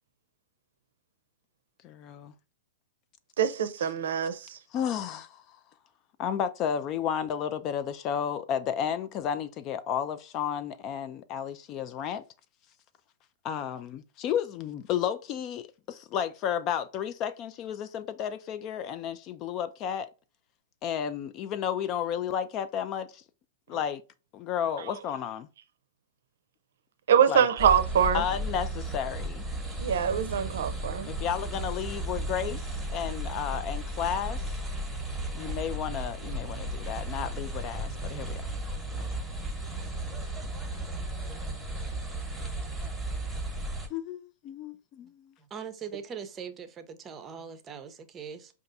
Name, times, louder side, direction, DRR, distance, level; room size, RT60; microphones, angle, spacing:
voice 1, 1.8-2.3 4.7-5.6 6.2-12.2 13.4-20.1 20.8-23.2 23.7-24.0 24.3-25.5 27.3-27.5 28.1-29.4 31.1-34.4 35.3-38.5 38.9-39.2 43.9-45.3, left 8 dB, 35° left, 0.3 m, -32 dB
voice 2, 3.4-4.6 27.1-28.2 29.8-31.1, right 8 dB, 65° right, 0.5 m, -24 dB
sound 1, 27.6-43.9, right 1 dB, 5° right, 1.1 m, -34 dB
voice 3, 45.5-48.5, right 7 dB, 25° right, 0.6 m, -41 dB
5.1 x 2.4 x 2.6 m
hypercardioid pair, 110°, 0 cm